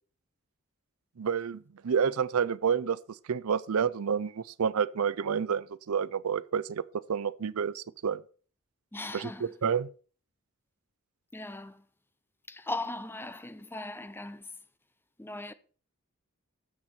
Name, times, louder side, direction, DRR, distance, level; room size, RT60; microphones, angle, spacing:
voice 1, 1.2-3.0 3.3-6.8 7.1-8.2 9.1-9.9, right 7 dB, 80° right, 0.5 m, -29 dB
voice 2, 8.9-9.5 11.3-11.8 12.5-14.5 15.2-15.5, left 2 dB, 10° left, 0.6 m, -38 dB
12.5 x 7.5 x 4.4 m
head